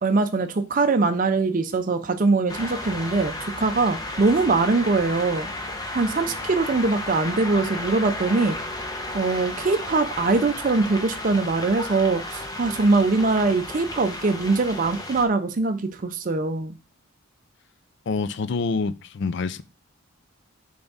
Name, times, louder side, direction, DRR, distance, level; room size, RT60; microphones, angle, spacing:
voice 1, 0.0-5.5 5.9-8.6 9.1-16.8, right 3 dB, 40° right, 0.5 m, -22 dB
sound 1, 2.5-15.2, left 1 dB, 15° left, 0.8 m, -33 dB
voice 2, 18.1-19.6, left 4 dB, 55° left, 0.4 m, -26 dB
7.0 x 3.4 x 4.0 m
head